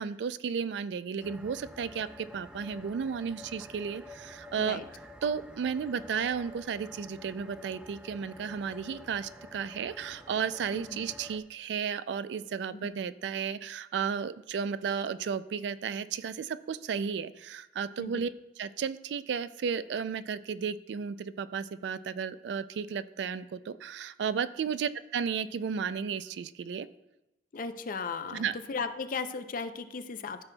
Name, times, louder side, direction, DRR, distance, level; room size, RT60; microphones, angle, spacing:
voice 1, 0.0-18.3 18.6-26.9 28.3-28.6, right 6 dB, 70° right, 14 dB, 0.3 m, -33 dB
sound 1, 1.2-11.4, left 1 dB, 5° right, 0.4 m, -49 dB
voice 2, 27.5-30.4, left 4 dB, 50° left, 10 dB, 0.5 m, -36 dB
13.5 x 6.1 x 2.2 m, 0.93 s
head